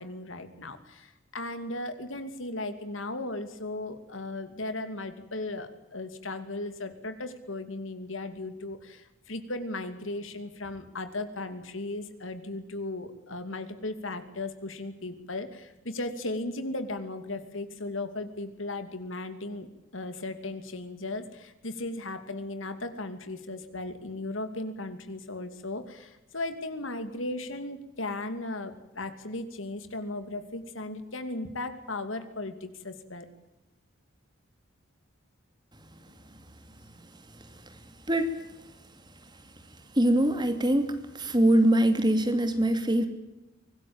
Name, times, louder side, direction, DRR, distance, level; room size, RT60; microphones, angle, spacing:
voice 1, 0.0-19.7 19.9-33.3, left 2 dB, 70° left, 9 dB, 2.7 m, -36 dB
voice 2, 40.0-40.9 41.1-43.1, right 1 dB, 20° right, 7 dB, 2.6 m, -23 dB
24.5 x 19.0 x 8.8 m, 0.97 s
head